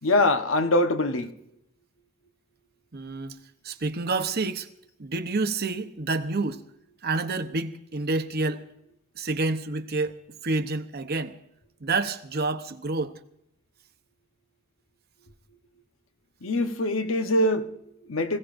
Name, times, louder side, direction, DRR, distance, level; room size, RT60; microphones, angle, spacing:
voice 1, 0.0-1.3 16.4-18.4, left 1 dB, 90° left, 1.1 m, -24 dB
voice 2, 2.9-3.4 3.6-4.7 5.0-6.6 7.0-8.7 9.2-11.4 11.8-13.2, right 3 dB, 50° right, 0.9 m, -28 dB
26.0 x 16.5 x 2.6 m
head